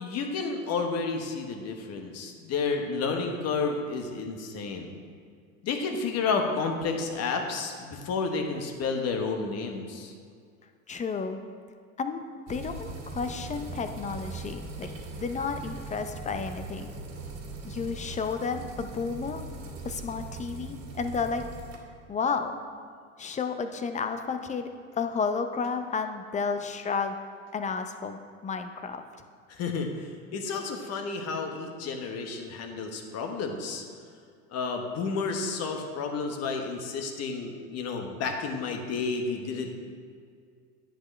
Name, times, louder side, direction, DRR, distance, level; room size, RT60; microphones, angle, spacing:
voice 1, 0.0-4.9 5.6-10.1 29.5-33.8 34.5-39.7, left 4 dB, 40° left, 3 dB, 1.3 m, -31 dB
voice 2, 10.9-11.4 12.0-12.2 12.5-14.9 15.2-16.9 17.6-19.5 19.8-21.4 22.1-22.6 23.2-27.2 27.5-29.0, left 5 dB, 20° left, 7 dB, 0.5 m, -32 dB
sound 1, 12.5-21.8, right 3 dB, 40° right, 2.0 m, -40 dB
10.5 x 7.7 x 3.3 m, 2.1 s
hypercardioid pair, 95°, 39 cm